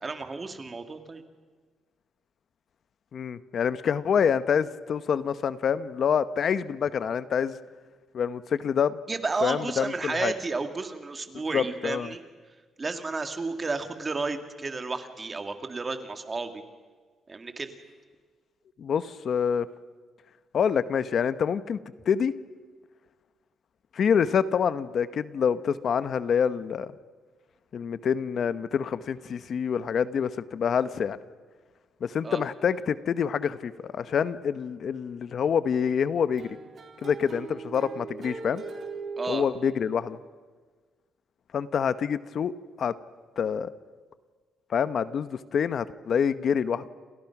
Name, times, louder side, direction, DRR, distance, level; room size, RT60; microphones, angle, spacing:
voice 1, 0.0-1.2 9.1-12.2 12.5-16.6 17.3-17.7 32.2-32.4 39.2-39.5, right 3 dB, 25° right, 7 dB, 2.4 m, -32 dB
voice 2, 3.1-7.6 8.1-9.0 9.4-10.3 11.5-12.1 18.8-19.7 20.5-22.3 23.9-26.9 27.7-31.2 32.0-36.6 37.0-38.6 39.3-40.2 41.5-42.5 42.8-42.9 43.4-43.7 44.7-46.9, left 7 dB, 55° left, 13 dB, 1.0 m, -26 dB
sound 1, 36.4-40.2, right 4 dB, 45° right, 4.4 m, -40 dB
30.0 x 27.0 x 6.0 m, 1.5 s
cardioid pair, 115°, 0 cm